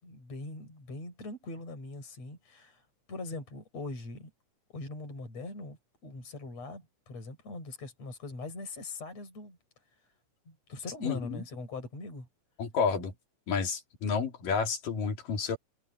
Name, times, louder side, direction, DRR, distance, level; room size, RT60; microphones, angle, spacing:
voice 1, 0.0-4.3 4.7-9.6 10.5-12.3, left 2 dB, 50° left, 7.9 m, -41 dB
voice 2, 11.0-11.4 12.6-13.1 13.5-15.6, left 5 dB, 80° left, 4.6 m, -30 dB
omnidirectional pair, 3.8 m